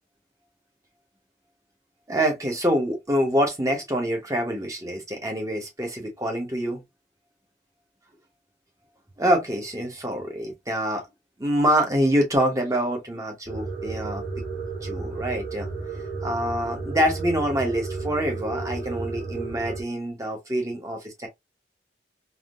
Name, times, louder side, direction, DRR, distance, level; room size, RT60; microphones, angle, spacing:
voice 1, 2.1-6.8 9.2-11.0 11.4-14.2 14.8-15.7 16.2-21.3, equal, 15° right, 1.0 m, -25 dB
sound 1, 13.5-19.8, right 4 dB, 55° right, 1.6 m, -33 dB
3.6 x 2.7 x 2.4 m
head